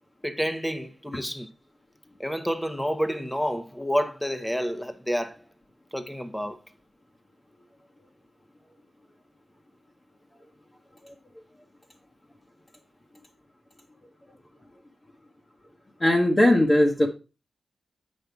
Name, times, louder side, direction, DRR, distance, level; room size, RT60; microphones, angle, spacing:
voice 1, 0.2-1.5 2.2-5.4 5.9-6.6, equal, 5° left, 1.0 m, -29 dB
voice 2, 16.0-17.1, left 1 dB, 25° left, 1.2 m, -19 dB
7.8 x 5.3 x 4.5 m
wide cardioid pair, 85°, 0 cm